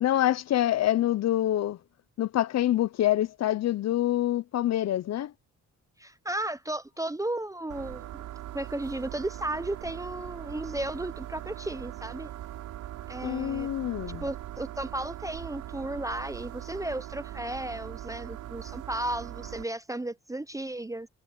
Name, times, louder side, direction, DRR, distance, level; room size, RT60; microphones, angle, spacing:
voice 1, 0.0-1.8 2.2-5.3 13.2-14.2, left 13 dB, 60° left, 0.7 m, -26 dB
voice 2, 6.0-8.1 8.5-12.3 13.1-13.7 14.2-21.1, right 1 dB, 10° right, 0.7 m, -34 dB
sound 1, 7.7-19.6, right 13 dB, 85° right, 5.5 m, -41 dB
cardioid pair, 90°, 30 cm